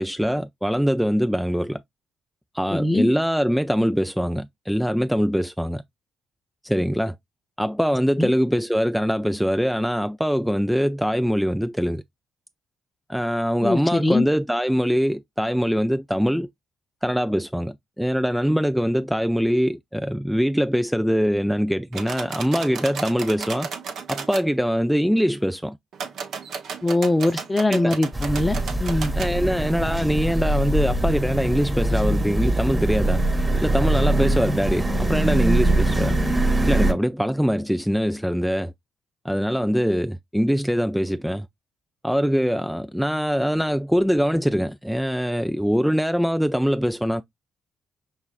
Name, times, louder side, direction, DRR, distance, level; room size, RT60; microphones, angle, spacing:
voice 1, 0.0-1.8 2.5-5.8 6.6-7.2 7.6-12.0 13.1-16.5 17.0-23.7 24.1-25.8 27.7-28.0 29.2-33.2 33.6-36.2 36.7-38.7 39.2-41.5 42.0-47.2, equal, ahead, 0.3 m, -23 dB
voice 2, 2.7-3.1 8.2-8.3 13.6-14.2 26.8-29.1, left 2 dB, 20° left, 0.7 m, -22 dB
sound 1, 21.9-24.5 25.9-29.3, right 6 dB, 65° right, 0.9 m, -34 dB
sound 2, 28.1-36.9, right 1 dB, 20° right, 1.2 m, -22 dB
5.5 x 3.0 x 2.4 m
hypercardioid pair, 45°, 0 cm